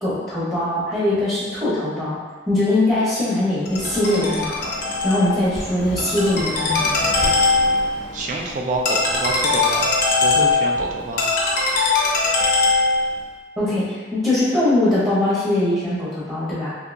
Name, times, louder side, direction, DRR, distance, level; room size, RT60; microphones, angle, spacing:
voice 1, 0.0-2.2 2.5-4.7 5.0-7.1 13.6-16.7, left 1 dB, 15° right, -11 dB, 0.9 m, -21 dB
Ringtone, 3.7-13.2, left 3 dB, 55° left, 0.7 m, -21 dB
voice 2, 8.1-9.9 10.2-11.2, right 2 dB, 45° right, 1 dB, 0.4 m, -27 dB
3.5 x 2.7 x 2.5 m, 1.4 s
head